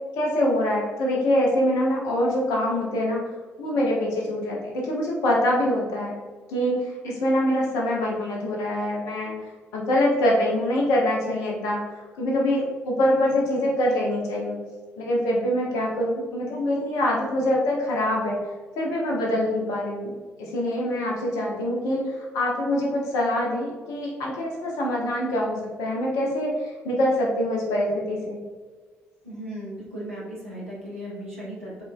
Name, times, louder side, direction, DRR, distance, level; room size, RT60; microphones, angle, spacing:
voice 1, 0.2-3.3 3.6-6.1 6.5-9.3 9.7-11.8 12.2-14.6 15.0-18.4 18.8-20.1 20.4-28.4, left 1 dB, 65° left, -2 dB, 1.1 m, -24 dB
voice 2, 29.2-31.8, equal, 90° right, -7 dB, 1.0 m, -36 dB
4.9 x 4.1 x 2.3 m, 1.4 s
figure-of-eight pair, 45°, 7 cm